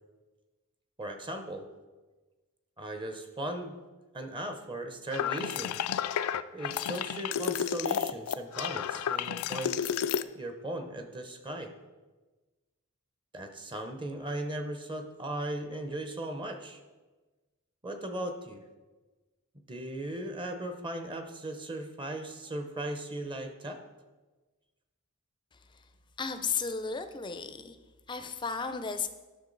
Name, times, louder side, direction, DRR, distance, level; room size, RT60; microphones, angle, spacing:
voice 1, 1.0-1.7 2.8-3.8 4.1-5.8 6.5-9.8 10.3-11.7 13.3-16.8 17.8-18.6 19.7-23.8, right 1 dB, 20° right, 6 dB, 0.7 m, -37 dB
sound 1, 5.1-10.2, left 9 dB, 85° left, 0.4 m, -31 dB
voice 2, 26.2-27.8 28.1-29.1, left 5 dB, 20° left, 9 dB, 0.5 m, -34 dB
11.0 x 6.2 x 3.9 m, 1.2 s
head